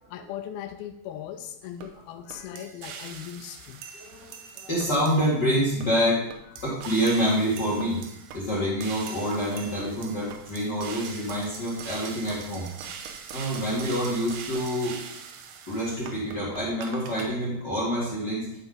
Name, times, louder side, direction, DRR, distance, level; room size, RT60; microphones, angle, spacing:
voice 1, 0.1-3.8 6.6-6.7, left 10 dB, 85° left, 6 dB, 2.2 m, -39 dB
sound 1, 1.8-1.9 2.3-5.4 5.8-5.9 6.3-17.3, right 6 dB, 80° right, 2.8 m, -42 dB
voice 2, 2.1-2.6 3.9-6.2 6.6-8.0 8.3-12.7 13.3-15.0 15.7-18.5, equal, 35° left, -6 dB, 1.9 m, -27 dB
11.5 x 5.3 x 3.9 m, 0.78 s
omnidirectional pair, 4.8 m